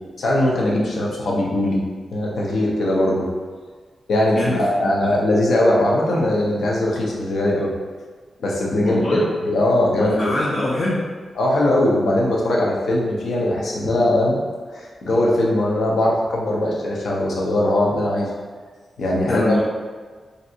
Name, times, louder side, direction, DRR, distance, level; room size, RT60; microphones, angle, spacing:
voice 1, 0.2-1.8 2.1-3.3 4.1-7.7 8.4-10.3 11.4-14.4 14.7-18.3 19.0-19.6, left 1 dB, 80° left, -3 dB, 0.6 m, -20 dB
voice 2, 4.3-4.9 8.8-9.3 10.0-11.1 19.3-19.6, left 1 dB, 40° left, -4 dB, 0.4 m, -23 dB
3.2 x 2.6 x 2.7 m, 1.5 s
wide cardioid pair, 145°, 0 cm